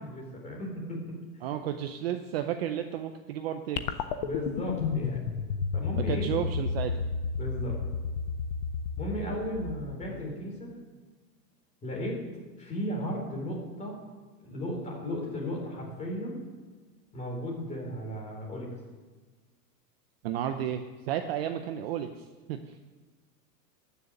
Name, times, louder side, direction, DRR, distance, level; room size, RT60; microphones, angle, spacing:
voice 1, 0.0-1.5 4.2-5.2 5.7-6.3 7.4-7.8 9.0-10.8 11.8-12.2 12.6-14.0 14.4-16.4 17.1-18.7, equal, 15° left, -2 dB, 3.9 m, -35 dB
voice 2, 1.4-3.8 6.0-6.9 20.2-22.6, right 10 dB, 40° right, 7 dB, 0.6 m, -32 dB
sound 1, 3.8-10.3, left 5 dB, 30° left, 0.4 m, -32 dB
13.5 x 6.9 x 9.1 m, 1.3 s
supercardioid pair, 160°, 49 cm